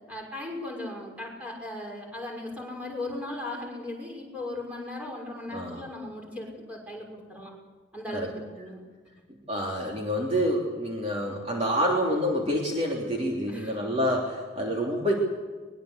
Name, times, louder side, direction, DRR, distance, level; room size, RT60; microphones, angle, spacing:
voice 1, 0.1-7.5 7.9-8.8 13.5-14.0, left 1 dB, 5° right, -1 dB, 6.1 m, -37 dB
voice 2, 5.5-5.8 8.1-8.3 9.5-15.1, equal, 30° right, -2 dB, 3.3 m, -27 dB
23.0 x 22.0 x 8.2 m, 1.4 s
head